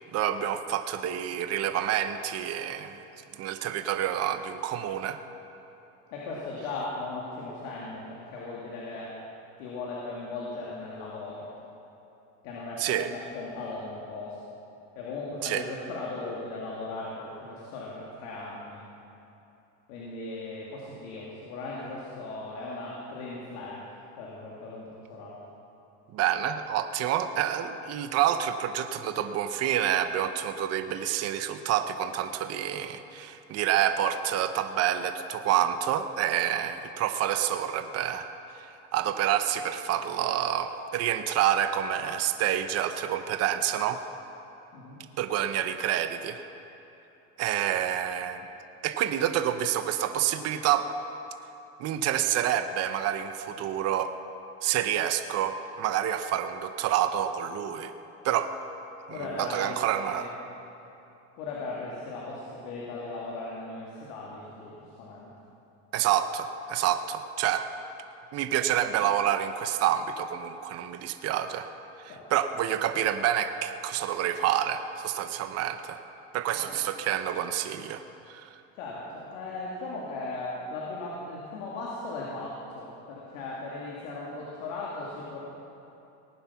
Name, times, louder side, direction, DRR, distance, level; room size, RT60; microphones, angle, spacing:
voice 1, 0.0-3.0 3.4-5.2 12.8-13.1 15.4-15.6 26.1-38.3 38.5-44.0 45.2-46.4 47.4-48.5 48.8-50.9 51.8-54.1 54.6-57.9 58.2-58.5 59.1-60.4 65.9-67.7 68.3-71.7 72.0-76.0 76.3-78.5, right 10 dB, 40° right, 9 dB, 0.8 m, -28 dB
voice 2, 6.1-9.2 9.6-11.5 12.4-14.4 15.0-18.8 19.9-23.8 24.2-25.4 44.7-45.0 59.1-59.8 60.1-60.3 61.4-65.3 68.6-68.9 72.1-72.3 76.5-76.8 78.8-85.4, left 3 dB, 80° left, -5 dB, 2.6 m, -38 dB
18.5 x 9.6 x 5.8 m, 2.9 s
supercardioid pair, 125°, 39 cm